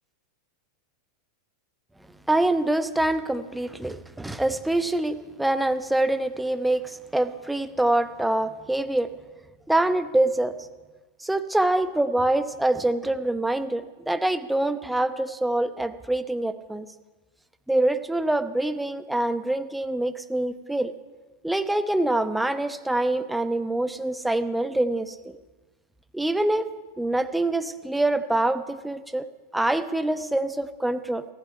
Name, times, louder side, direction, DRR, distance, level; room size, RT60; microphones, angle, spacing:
voice 1, 2.3-9.1 9.7-10.5 11.2-16.8 17.7-20.9 21.4-25.4 26.1-26.7 27.0-29.3 29.5-31.2, right 1 dB, 5° right, 10 dB, 0.9 m, -25 dB
15.5 x 14.0 x 5.5 m, 1.2 s
figure-of-eight pair, 90°, 0 cm